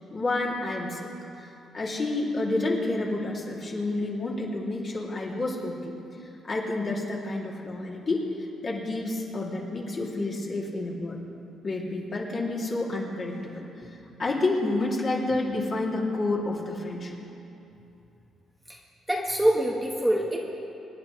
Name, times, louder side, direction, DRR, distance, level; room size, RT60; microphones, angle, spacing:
voice 1, 0.1-1.1 1.4-5.9 6.2-8.3 8.6-11.2 11.6-17.2, left 2 dB, 40° left, -4 dB, 2.9 m, -29 dB
voice 2, 19.1-20.4, right 1 dB, 5° right, -2 dB, 1.4 m, -24 dB
26.0 x 10.0 x 3.3 m, 2.9 s
cardioid pair, 90°, 0 cm